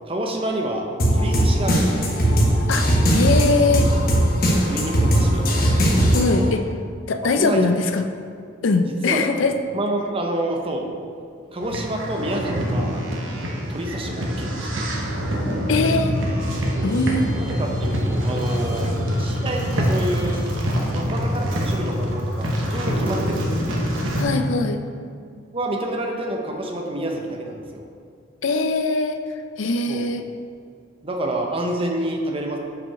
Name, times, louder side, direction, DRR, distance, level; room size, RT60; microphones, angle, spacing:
voice 1, 0.1-0.9 1.1-2.0 4.7-5.4 7.2-7.8 8.8-9.5 9.7-10.9 11.5-13.0 13.7-14.8 16.8-16.9 17.3-18.9 19.1-20.4 20.9-23.6 25.5-27.8 29.9-30.0 31.0-32.6, right 1 dB, 30° right, 1 dB, 0.8 m, -28 dB
sound 1, 1.0-6.5, equal, 50° left, 1.1 m, -19 dB
voice 2, 2.7-3.9 6.1-6.6 7.1-8.0 8.6-9.5 15.7-16.2 16.8-17.3 18.9-19.0 24.1-24.8 28.4-29.2 29.6-30.2, left 3 dB, 75° left, 7 dB, 0.5 m, -21 dB
sound 2, 11.6-24.2, equal, 85° right, 1.1 m, -25 dB
6.0 x 5.0 x 4.8 m, 2.3 s
head